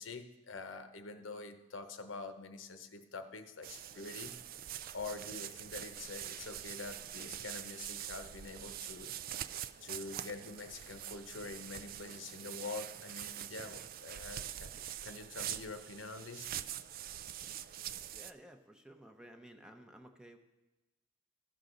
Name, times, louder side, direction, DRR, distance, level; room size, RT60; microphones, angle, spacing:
voice 1, 0.0-4.3 4.9-9.1 9.8-16.5, left 3 dB, 85° left, 7 dB, 0.8 m, -46 dB
sound 1, 3.6-18.3, right 11 dB, 50° right, 0.3 m, -44 dB
voice 2, 18.1-20.4, equal, 5° right, 4 dB, 0.7 m, -55 dB
15.0 x 6.3 x 3.9 m, 1.0 s
head